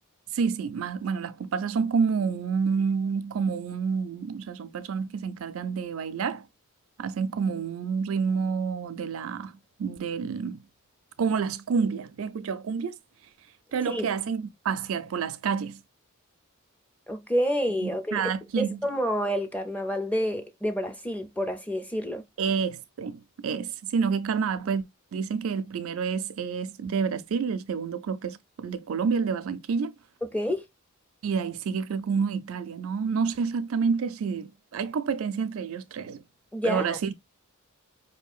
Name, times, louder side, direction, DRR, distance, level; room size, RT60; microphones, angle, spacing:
voice 1, 0.3-6.5 7.0-9.5 9.8-10.6 11.2-12.9 13.7-15.8 17.8-18.9 22.4-24.9 25.1-29.9 31.2-36.2 36.6-37.1, right 6 dB, 70° right, 0.4 m, -29 dB
voice 2, 17.1-18.2 18.6-22.2 30.2-30.6 36.5-37.0, equal, 5° left, 0.5 m, -28 dB
4.9 x 2.8 x 2.3 m
head